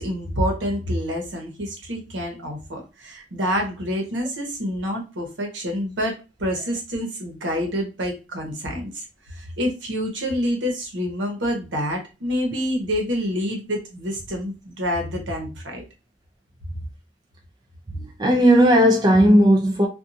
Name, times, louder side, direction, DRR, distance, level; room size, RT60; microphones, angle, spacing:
voice 1, 0.0-15.8, equal, 75° right, 1.0 m, -27 dB
voice 2, 17.9-19.9, equal, 20° right, 0.4 m, -16 dB
2.6 x 2.3 x 2.6 m
head